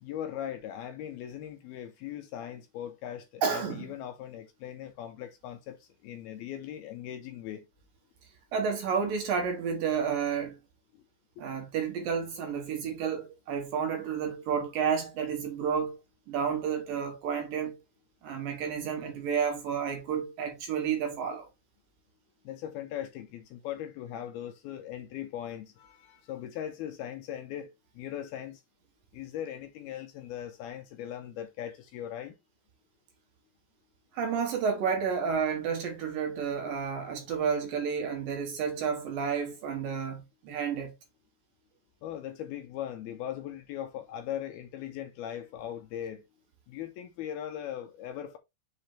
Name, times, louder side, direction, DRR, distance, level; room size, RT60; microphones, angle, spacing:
voice 1, 0.0-7.7 10.9-11.0 11.4-11.5 22.4-28.6 29.1-32.3 42.0-46.2 46.7-48.4, left 10 dB, 75° left, 2.5 m, -39 dB
voice 2, 3.4-3.9 8.5-10.6 11.4-16.0 16.3-17.8 18.2-21.5 34.1-40.9, right 6 dB, 60° right, 2.8 m, -31 dB
6.9 x 4.8 x 3.3 m
omnidirectional pair, 5.0 m